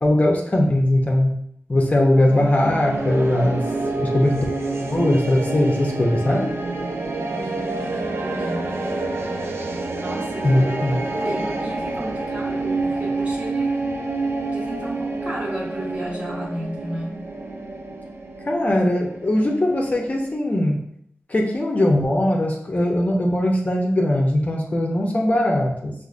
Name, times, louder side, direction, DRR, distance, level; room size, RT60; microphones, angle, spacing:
voice 1, 0.0-1.4 1.7-3.6 4.0-4.5 4.9-6.5 10.4-11.0 18.4-20.8 21.3-25.9, left 1 dB, 35° left, 0 dB, 0.6 m, -20 dB
sound 1, 2.1-20.3, right 2 dB, 80° right, 0.4 m, -28 dB
voice 2, 7.3-8.8 10.0-13.8 14.5-17.2, right 1 dB, 30° right, -4 dB, 1.0 m, -33 dB
4.8 x 2.5 x 2.4 m, 0.71 s
wide cardioid pair, 85°, 4 cm